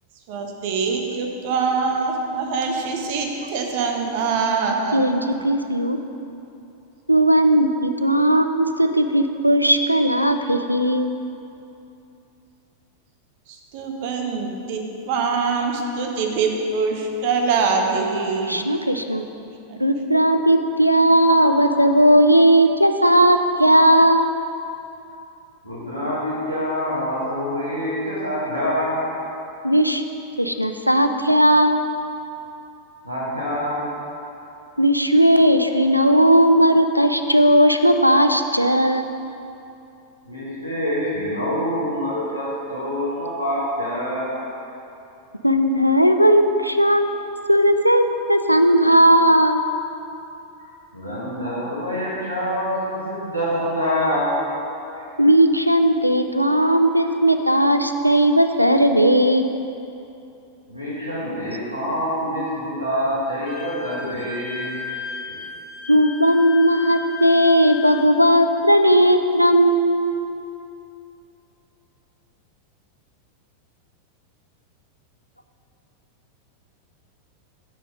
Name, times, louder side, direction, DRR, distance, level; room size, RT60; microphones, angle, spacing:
voice 1, 0.3-5.0 13.5-18.7 19.7-19.8, right 4 dB, 50° right, 2 dB, 0.8 m, -24 dB
voice 2, 4.9-6.0 7.1-11.2 18.5-19.2 19.8-24.3 29.6-30.0 30.4-31.8 34.8-39.1 45.4-47.1 47.5-49.6 55.2-59.5 65.9-70.1, equal, 90° left, 6 dB, 0.3 m, -17 dB
voice 3, 25.6-29.1 33.0-33.9 40.3-44.3 50.9-54.3 55.0-55.2 56.5-56.6 60.7-64.8 65.3-65.4, equal, 85° right, -8 dB, 1.4 m, -26 dB
Wind instrument woodwind instrument, 63.5-68.1, left 3 dB, 35° left, 1.5 m, -35 dB
6.4 x 4.5 x 5.0 m, 2.8 s
figure-of-eight pair, 90°, 0 cm